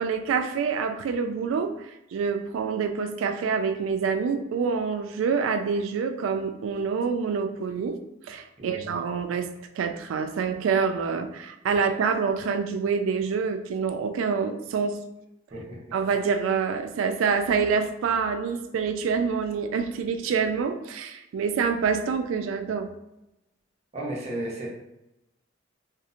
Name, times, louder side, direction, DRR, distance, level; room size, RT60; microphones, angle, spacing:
voice 1, 0.0-8.0 8.3-9.5 9.8-15.0 15.9-22.9, right 5 dB, 85° right, 8 dB, 0.3 m, -26 dB
voice 2, 15.5-15.9 23.9-24.7, right 1 dB, 35° right, -4 dB, 0.7 m, -34 dB
2.8 x 2.0 x 2.5 m, 0.89 s
head